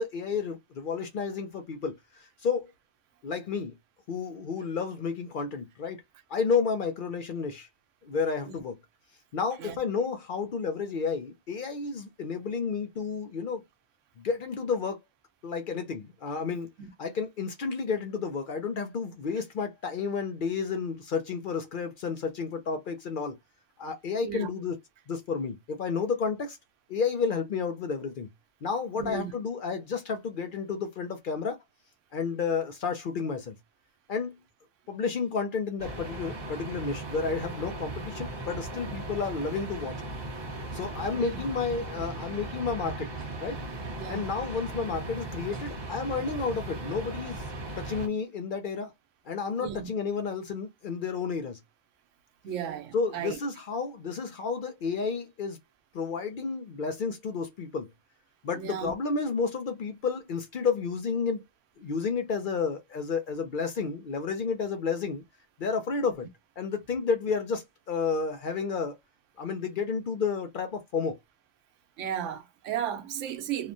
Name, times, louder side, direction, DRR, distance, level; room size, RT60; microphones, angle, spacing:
voice 1, 0.0-2.7 3.2-3.7 4.1-6.0 6.3-7.7 8.0-8.8 9.3-13.6 14.2-15.0 15.4-16.7 17.0-23.3 23.8-24.8 25.1-26.6 26.9-28.3 28.6-31.6 32.1-33.5 34.1-34.4 34.9-39.9 40.7-43.1 43.4-43.6 44.1-47.5 47.8-48.9 49.3-51.6 52.9-55.6 55.9-57.9 58.4-61.4 61.8-65.2 65.6-66.3 66.6-69.0 69.4-71.2, left 5 dB, 55° left, 0.6 m, -31 dB
voice 2, 28.9-29.3 41.1-41.4 44.0-44.2 49.6-49.9 52.4-53.4 58.5-58.9 72.0-73.7, right 9 dB, 85° right, 1.0 m, -34 dB
sound 1, 35.8-48.1, right 2 dB, 25° right, 0.8 m, -38 dB
2.9 x 2.2 x 2.5 m
omnidirectional pair, 1.2 m